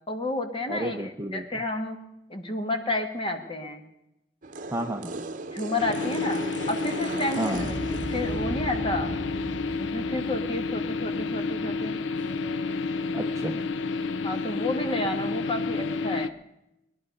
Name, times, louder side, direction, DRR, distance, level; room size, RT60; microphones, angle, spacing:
voice 1, 0.1-2.0 2.3-3.8 5.5-6.4 6.7-7.8 8.1-9.1 9.8-11.9 14.2-16.3, left 2 dB, 30° left, 5 dB, 1.5 m, -31 dB
voice 2, 0.7-1.5 4.7-5.4 7.4-7.9 13.1-13.7, right 1 dB, 15° right, 4 dB, 0.6 m, -32 dB
sound 1, 4.4-11.8 12.2-13.6, right 2 dB, 45° right, 0.9 m, -37 dB
sound 2, 5.8-16.3, left 4 dB, 80° left, 0.5 m, -30 dB
20.0 x 11.0 x 5.3 m, 0.87 s
head